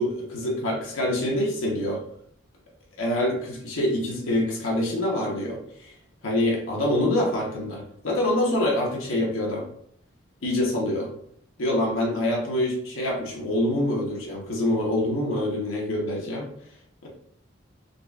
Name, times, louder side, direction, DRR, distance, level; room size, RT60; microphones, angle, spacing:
voice 1, 0.0-2.0 3.0-5.9 6.2-9.7 10.4-11.1 11.6-16.5 17.0-17.1, left 1 dB, 80° left, -2 dB, 0.9 m, -25 dB
3.9 x 3.0 x 2.3 m, 0.66 s
head